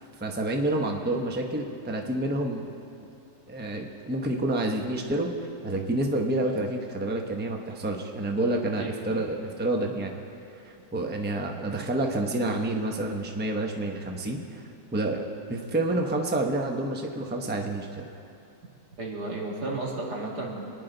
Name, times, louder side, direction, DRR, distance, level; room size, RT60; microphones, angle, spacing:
voice 1, 0.2-2.6 3.5-5.3 5.6-10.1 10.6-14.6 14.9-18.0, right 2 dB, 10° right, 2 dB, 0.7 m, -28 dB
voice 2, 8.7-9.2 11.5-11.6 19.0-20.6, right 2 dB, 90° right, -2 dB, 2.7 m, -33 dB
25.0 x 10.0 x 3.9 m, 2.8 s
omnidirectional pair, 1.7 m